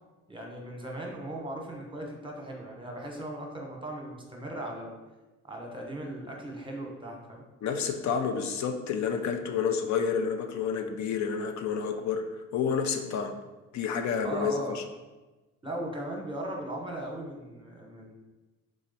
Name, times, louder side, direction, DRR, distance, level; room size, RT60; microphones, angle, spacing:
voice 1, 0.3-4.9 5.4-7.4 14.2-14.8 15.6-18.1, right 1 dB, 15° right, 0 dB, 0.9 m, -38 dB
voice 2, 7.6-12.2 12.5-13.3 13.7-14.8, left 6 dB, 70° left, 6 dB, 0.5 m, -29 dB
3.6 x 3.1 x 4.0 m, 1.2 s
cardioid pair, 90°, 30 cm